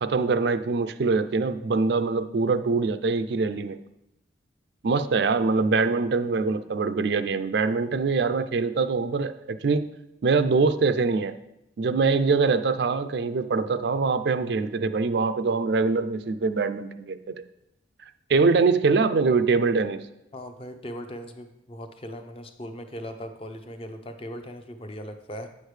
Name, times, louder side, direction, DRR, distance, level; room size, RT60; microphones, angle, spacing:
voice 1, 0.0-3.8 4.8-9.9 10.2-11.3 11.8-17.4 18.3-20.0, right 4 dB, 60° right, 11 dB, 0.4 m, -23 dB
voice 2, 20.3-25.5, equal, 30° left, 7 dB, 0.6 m, -39 dB
8.6 x 6.4 x 3.3 m, 0.87 s
head